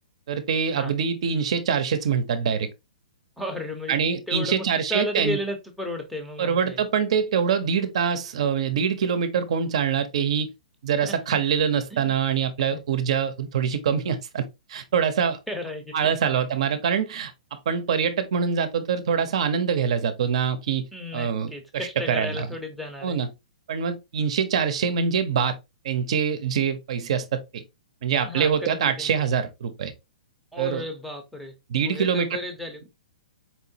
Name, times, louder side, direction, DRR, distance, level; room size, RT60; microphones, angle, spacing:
voice 1, 0.3-2.7 3.9-5.4 6.4-10.5 10.8-14.4 14.7-15.4 15.9-20.9 21.1-22.5 23.0-23.3 23.7-25.6 25.8-27.6 28.0-29.9 30.6-30.8 31.7-32.3, right 7 dB, 55° right, 0.6 m, -24 dB
voice 2, 3.4-4.0 4.3-4.6 4.9-6.8 11.0-11.4 11.9-12.1 12.7-12.8 15.5-16.5 20.9-23.2 28.2-29.3 30.5-31.6 31.8-32.9, left 1 dB, ahead, 0.6 m, -34 dB
4.5 x 2.9 x 2.7 m
hypercardioid pair, 165°, 4 cm